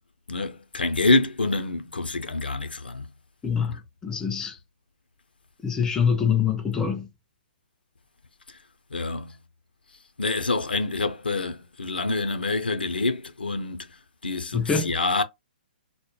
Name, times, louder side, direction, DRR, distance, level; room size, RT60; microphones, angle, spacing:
voice 1, 0.3-3.1 3.7-3.8 8.9-9.4 10.2-13.9 14.2-15.2, left 3 dB, 80° left, 0.5 m, -26 dB
voice 2, 3.4-4.6 5.6-7.1 14.5-14.9, left 6 dB, 10° left, 0.4 m, -25 dB
2.1 x 2.0 x 3.0 m
figure-of-eight pair, 125°, 5 cm